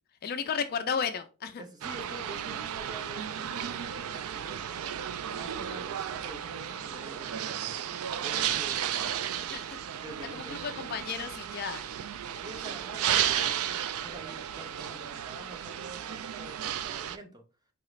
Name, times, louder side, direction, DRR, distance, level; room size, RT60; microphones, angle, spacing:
voice 1, 0.2-1.6 9.4-9.8 10.3-11.8, left 6 dB, 45° left, 0.3 m, -33 dB
voice 2, 1.6-5.0 5.3-7.8 8.2-9.3 9.9-10.6 12.4-17.4, right 1 dB, 15° right, 0.6 m, -47 dB
sound 1, 1.8-17.2, right 10 dB, 70° right, 0.3 m, -34 dB
4.8 x 2.3 x 3.1 m
head